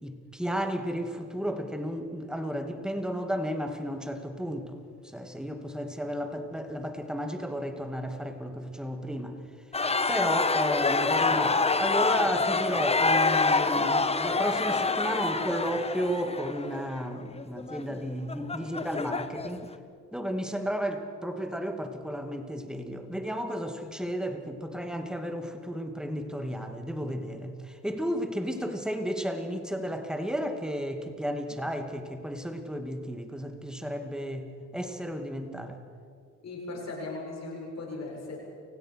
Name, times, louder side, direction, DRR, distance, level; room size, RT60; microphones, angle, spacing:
voice 1, 0.0-4.8 5.0-9.4 10.1-19.7 20.1-35.8, equal, ahead, 6 dB, 2.4 m, -33 dB
sound 1, 9.7-19.7, left 3 dB, 20° left, 1.3 m, -26 dB
voice 2, 36.4-38.4, left 2 dB, 60° left, -1 dB, 7.4 m, -38 dB
29.0 x 16.5 x 6.5 m, 2.3 s
cardioid pair, 90°, 30 cm